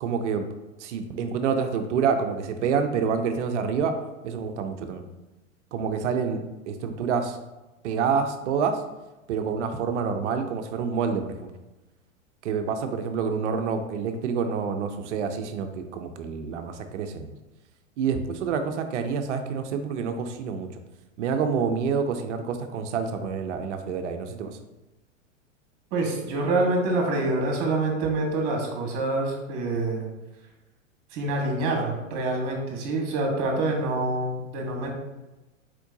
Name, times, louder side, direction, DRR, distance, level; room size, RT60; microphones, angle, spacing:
voice 1, 0.0-0.5 0.8-3.9 4.2-5.0 5.7-7.4 7.8-8.7 9.3-11.5 12.4-17.3 18.0-20.7 21.2-24.5, right 6 dB, 65° right, 7 dB, 0.7 m, -27 dB
voice 2, 25.9-30.1 31.1-34.9, right 2 dB, 40° right, 0 dB, 1.5 m, -26 dB
4.5 x 4.4 x 2.7 m, 1.0 s
hypercardioid pair, 105°, 39 cm